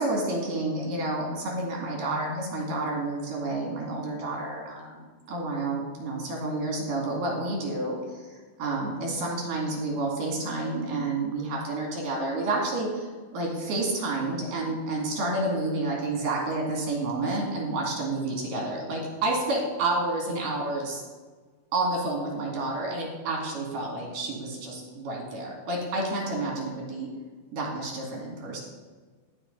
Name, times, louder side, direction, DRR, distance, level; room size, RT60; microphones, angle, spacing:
voice 1, 0.0-8.0 8.3-21.0 21.7-27.1 27.5-28.6, right 2 dB, 65° right, -2 dB, 3.9 m, -30 dB
13.0 x 6.1 x 4.0 m, 1.4 s
omnidirectional pair, 4.2 m